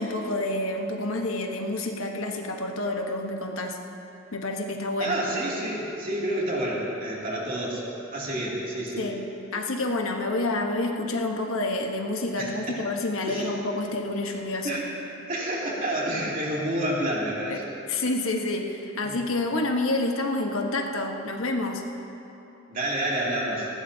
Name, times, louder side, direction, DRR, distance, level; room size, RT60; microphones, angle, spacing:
voice 1, 0.0-3.8 4.3-5.2 9.0-9.2 9.5-14.8 17.5-21.8, left 2 dB, 80° left, 2 dB, 1.2 m, -28 dB
voice 2, 5.0-7.8 8.1-9.1 12.4-12.8 13.2-13.5 14.6-14.8 15.3-17.6 19.0-19.2 22.7-23.7, right 1 dB, 40° right, -5 dB, 2.7 m, -29 dB
19.5 x 16.0 x 2.8 m, 3.0 s
head